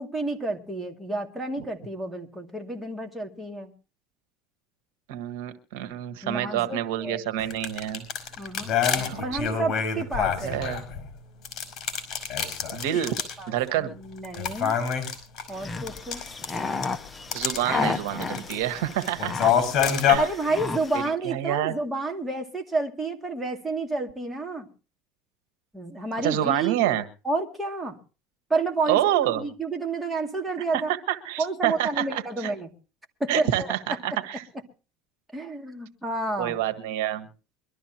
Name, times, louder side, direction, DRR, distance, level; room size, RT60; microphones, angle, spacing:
voice 1, 0.0-3.7 6.2-7.2 8.4-8.7 9.2-10.6 13.4-14.8 15.5-16.2 20.2-24.7 25.7-26.9 27.2-28.0 28.5-30.9 31.4-32.7 33.2-33.7 35.3-36.6, right 2 dB, 10° right, 2.3 m, -30 dB
voice 2, 5.1-8.1 8.9-9.3 10.4-10.8 12.7-13.1 13.5-13.9 17.3-19.5 20.1-20.3 20.9-21.7 26.2-27.0 28.9-29.4 31.1-32.5 33.3-34.4 36.4-37.3, right 12 dB, 85° right, 1.5 m, -27 dB
sound 1, 7.4-11.1 11.4-13.4 13.7-13.8 14.2-16.9 17.3-17.6 18.1-18.5 18.9-20.2, left 8 dB, 40° left, 5.3 m, -26 dB
sound 2, 15.5-21.1, left 4 dB, 15° left, 0.9 m, -33 dB
23.5 x 13.0 x 2.9 m
supercardioid pair, 130°, 0 cm